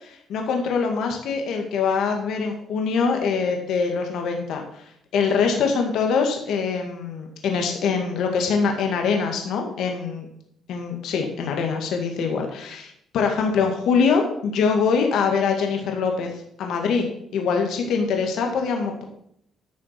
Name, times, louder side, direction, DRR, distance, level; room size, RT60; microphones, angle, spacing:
voice 1, 0.0-4.8 5.1-10.3 10.7-16.3 16.6-19.0, left 5 dB, 80° left, 3 dB, 1.9 m, -23 dB
11.0 x 6.5 x 5.9 m, 0.70 s
cardioid pair, 90°, 0 cm